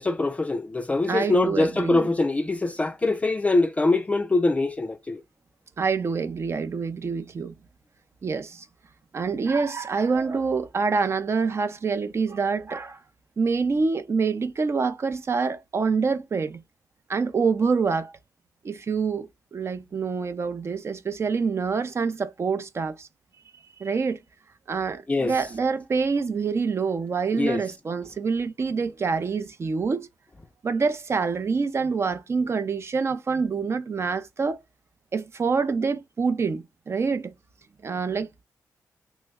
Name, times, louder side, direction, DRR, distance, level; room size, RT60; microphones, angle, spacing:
voice 1, 0.0-5.2 25.1-25.4 27.3-27.6, left 2 dB, 20° left, 0.4 m, -23 dB
voice 2, 1.1-2.1 5.8-7.5 8.2-8.6 9.1-13.0 13.4-16.6 17.1-18.1 18.6-23.1 23.8-24.2 24.7-30.1 30.6-34.6 35.1-37.3 37.8-38.4, right 5 dB, 45° right, 0.5 m, -26 dB
3.1 x 2.2 x 3.4 m
cardioid pair, 75°, 6 cm